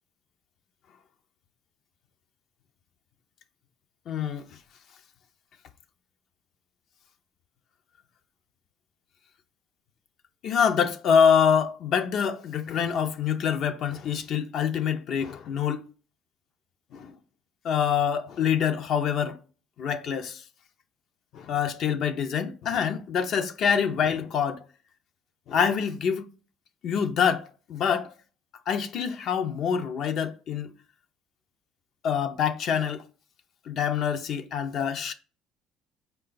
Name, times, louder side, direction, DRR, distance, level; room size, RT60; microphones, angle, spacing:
voice 1, 4.1-4.4 10.4-15.8 16.9-17.1 17.6-19.4 19.8-20.4 21.3-24.6 25.5-26.3 26.8-28.1 28.7-30.7 32.0-33.0 33.7-35.1, left 7 dB, 60° left, 0.5 m, -25 dB
4.5 x 2.3 x 3.8 m
supercardioid pair, 95°, 0 cm